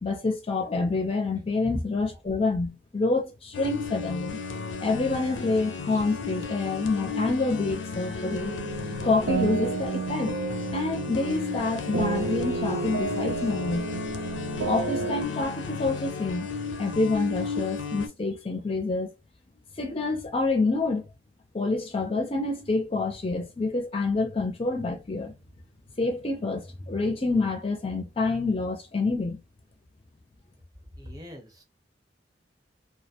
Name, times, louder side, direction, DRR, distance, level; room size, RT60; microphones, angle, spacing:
voice 1, 0.0-4.4 4.8-8.5 9.0-10.4 10.7-13.8 14.7-16.5 16.8-19.1 19.8-21.0 21.5-25.3 26.0-29.4, left 3 dB, 30° left, 0.5 m, -27 dB
sound 1, 3.5-18.1, left 5 dB, 90° left, 0.4 m, -34 dB
sound 2, 8.2-15.2, right 4 dB, 80° right, 0.4 m, -31 dB
voice 2, 31.0-31.6, left 1 dB, 20° right, 0.8 m, -43 dB
2.3 x 2.1 x 2.7 m
head